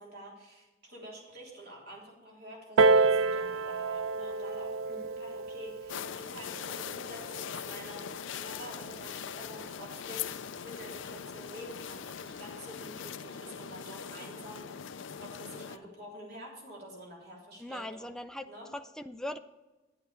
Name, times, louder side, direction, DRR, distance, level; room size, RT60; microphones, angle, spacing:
voice 1, 0.0-18.1 18.5-18.7, equal, 50° right, -3 dB, 3.2 m, -48 dB
Piano, 2.8-8.0 8.8-8.9, right 3 dB, 80° right, 0.4 m, -29 dB
sound 1, 5.9-15.8, left 8 dB, 65° left, 0.5 m, -41 dB
voice 2, 17.6-18.5 18.7-19.4, left 1 dB, 5° left, 8 dB, 0.3 m, -40 dB
10.5 x 8.9 x 4.2 m, 1.2 s
head